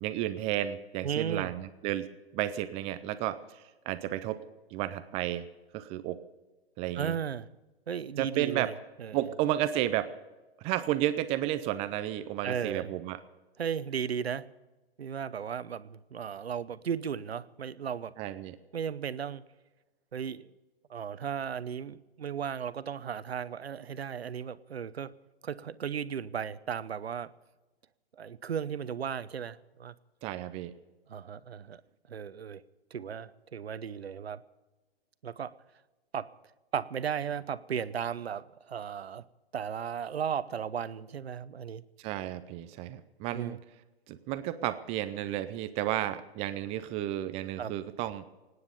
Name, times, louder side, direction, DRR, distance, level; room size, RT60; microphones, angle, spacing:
voice 1, 0.0-2.1 2.3-4.4 4.7-5.5 5.7-6.2 6.8-7.2 8.2-8.7 9.1-10.1 10.6-13.2 18.2-18.6 30.2-30.7 42.0-43.6 44.1-48.2, right 13 dB, 20° right, 12 dB, 0.5 m, -32 dB
voice 2, 1.0-1.5 7.0-7.5 7.9-8.7 9.0-9.2 12.4-12.9 13.6-14.4 15.0-18.1 18.7-19.4 20.1-20.5 20.9-25.1 25.4-27.3 28.2-29.9 31.1-31.8 32.1-32.6 32.9-34.4 35.2-35.5 36.1-36.3 36.7-39.2 39.5-41.8 43.3-43.6 47.6-47.7, right 8 dB, 75° right, 15 dB, 0.9 m, -35 dB
25.0 x 9.7 x 5.3 m, 1.1 s
figure-of-eight pair, 125°, 31 cm